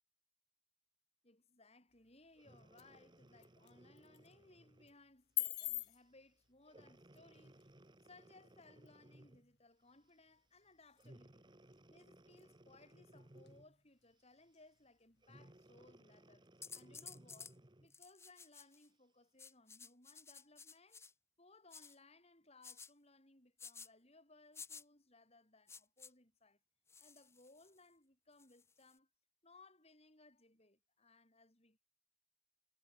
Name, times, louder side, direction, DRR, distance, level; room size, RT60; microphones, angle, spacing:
voice 1, 1.2-7.7 8.0-11.5 11.9-16.5 16.7-21.0 21.4-26.6 27.0-29.1 29.4-31.8, left 2 dB, 30° left, 4.7 m, -65 dB
sound 1, 1.9-15.9, left 18 dB, 50° left, 1.4 m, -50 dB
Breathing, 2.3-5.0 5.6-5.8 6.7-9.5 11.0-13.8 15.2-18.0 18.6-18.7, right 1 dB, 20° right, 1.1 m, -62 dB
sound 2, 16.6-17.5 17.9-18.9 19.4-21.1 21.7-22.0 22.6-22.9 23.6-23.9 24.5-24.8 25.7-26.1 26.9-27.8 28.4-28.9, left 5 dB, 10° left, 0.7 m, -54 dB
head